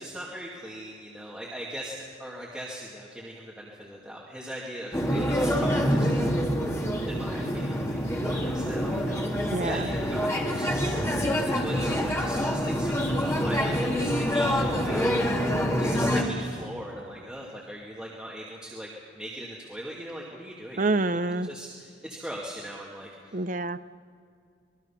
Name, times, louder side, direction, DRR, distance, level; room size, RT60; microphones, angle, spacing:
voice 1, 0.0-6.4 7.1-10.9 11.4-15.3 15.8-18.9 19.1-21.0 21.5-23.4, equal, 5° right, -5 dB, 2.4 m, -40 dB
sound 1, 4.9-16.2, equal, 15° left, 2.1 m, -26 dB
voice 2, 9.5-9.8 20.8-21.5 23.3-23.8, right 2 dB, 40° right, 12 dB, 0.6 m, -27 dB
25.5 x 22.0 x 5.8 m, 2.3 s
head